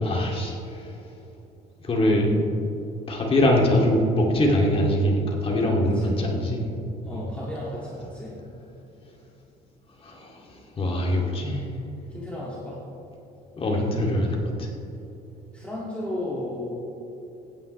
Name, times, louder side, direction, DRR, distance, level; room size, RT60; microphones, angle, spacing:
voice 1, 0.0-0.9 1.8-2.4 3.1-6.7 7.1-7.2 10.0-10.4 10.8-11.7 13.6-14.7, left 1 dB, 35° left, -1 dB, 2.4 m, -23 dB
voice 2, 7.0-8.4 12.1-12.8 15.5-16.7, left 1 dB, 5° left, -7 dB, 2.2 m, -34 dB
16.0 x 9.5 x 3.2 m, 2.9 s
cardioid pair, 110°, 17 cm